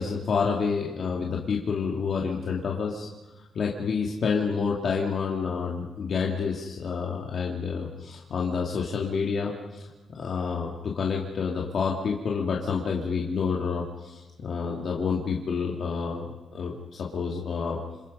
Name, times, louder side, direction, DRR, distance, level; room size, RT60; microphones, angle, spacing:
voice 1, 0.0-3.1 3.5-17.8, left 5 dB, 50° left, -1 dB, 2.4 m, -29 dB
29.0 x 27.5 x 5.5 m, 1.1 s
wide cardioid pair, 170°, 0 cm